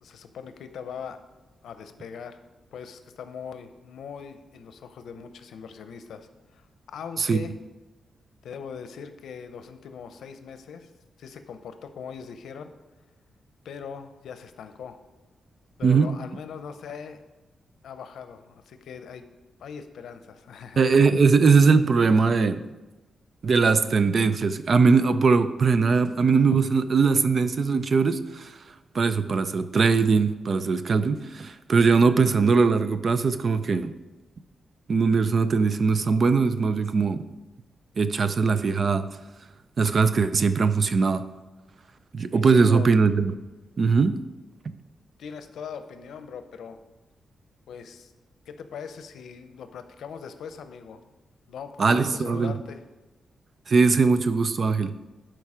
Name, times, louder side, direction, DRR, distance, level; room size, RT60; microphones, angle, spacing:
voice 1, 0.0-1.2 1.6-2.4 2.7-7.6 8.4-10.9 11.2-12.7 13.6-15.0 15.8-17.2 17.8-19.2 19.6-20.8 42.3-42.9 45.2-46.8 47.7-48.1 48.5-51.0 51.5-52.8, left 6 dB, 90° left, 9 dB, 0.7 m, -40 dB
voice 2, 20.8-22.6 23.4-28.5 28.9-33.9 34.9-37.2 38.0-39.1 39.8-41.2 42.1-43.3 43.8-44.2 44.7-44.8 51.8-52.6 53.7-54.9, right 4 dB, 40° right, 11 dB, 0.4 m, -21 dB
11.5 x 4.6 x 4.9 m, 1.1 s
wide cardioid pair, 165°, 0 cm